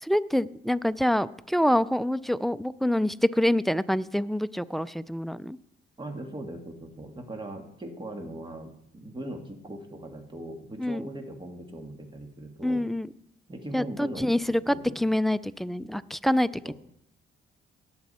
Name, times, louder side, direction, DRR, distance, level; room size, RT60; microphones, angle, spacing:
voice 1, 0.0-5.6 10.8-11.1 12.6-13.1 13.7-16.7, left 1 dB, ahead, 18 dB, 0.3 m, -26 dB
voice 2, 6.0-12.8 13.5-14.3 14.7-15.0 16.6-16.7, right 1 dB, 25° right, 4 dB, 1.9 m, -39 dB
17.5 x 7.1 x 4.2 m, 0.76 s
cardioid pair, 90°, 20 cm